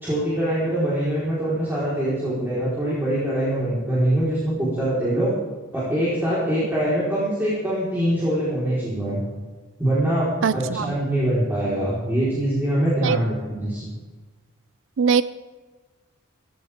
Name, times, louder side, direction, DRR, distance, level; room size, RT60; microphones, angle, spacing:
voice 1, 0.0-5.3 5.7-9.2 9.8-13.9, right 1 dB, 10° right, -10 dB, 4.4 m, -23 dB
voice 2, 10.4-10.9 13.0-13.2 15.0-15.2, right 6 dB, 65° right, 15 dB, 0.4 m, -21 dB
17.5 x 16.5 x 3.7 m, 1.3 s
head